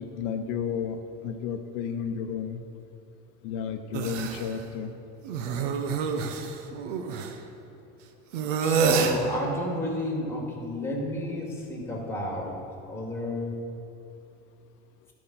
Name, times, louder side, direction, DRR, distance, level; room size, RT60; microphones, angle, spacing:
voice 1, 0.0-2.6 3.4-4.9, left 7 dB, 70° left, 6 dB, 0.7 m, -32 dB
sound 1, 3.9-4.5 5.2-7.3 8.3-9.2, right 6 dB, 85° right, 0.9 m, -27 dB
voice 2, 8.6-12.6 12.9-13.5, left 1 dB, 5° left, -1 dB, 2.2 m, -31 dB
11.5 x 5.1 x 5.9 m, 2.6 s
supercardioid pair, 105°, 36 cm